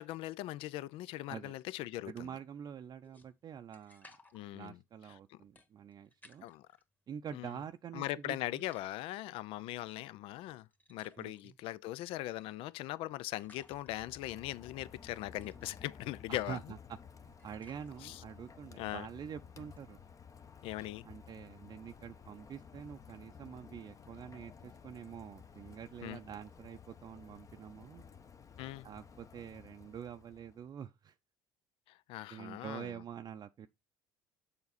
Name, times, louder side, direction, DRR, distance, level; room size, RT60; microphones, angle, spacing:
voice 1, 0.0-2.3 4.3-4.8 5.3-5.4 6.4-6.7 7.3-7.5 7.9-16.6 18.0-18.2 18.8-19.1 20.6-21.0 26.0-26.2 28.6-28.9 31.9-32.9, left 15 dB, 65° left, 0.4 m, -40 dB
voice 2, 2.0-4.1 4.5-6.4 7.1-8.7 11.2-11.5 16.3-20.0 21.0-28.0 28.8-31.2 32.3-33.7, right 8 dB, 40° right, 0.5 m, -46 dB
sound 1, 3.0-6.8 7.3-8.3 8.6-20.3, left 1 dB, 15° left, 1.9 m, -65 dB
Rain, 13.4-30.7, left 6 dB, 35° left, 1.0 m, -55 dB
7.0 x 5.2 x 4.0 m
supercardioid pair, 80°, 10 cm